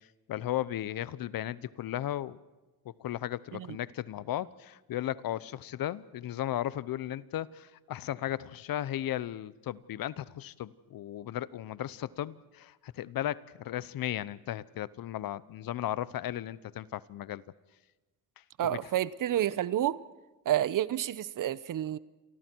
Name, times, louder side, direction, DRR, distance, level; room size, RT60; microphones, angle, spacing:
voice 1, 0.3-2.4 3.0-17.4 18.6-18.8, left 12 dB, 65° left, 0.9 m, -35 dB
voice 2, 18.6-20.0 20.4-22.0, right 12 dB, 55° right, 0.9 m, -29 dB
29.0 x 24.0 x 4.6 m
cardioid pair, 120°, 38 cm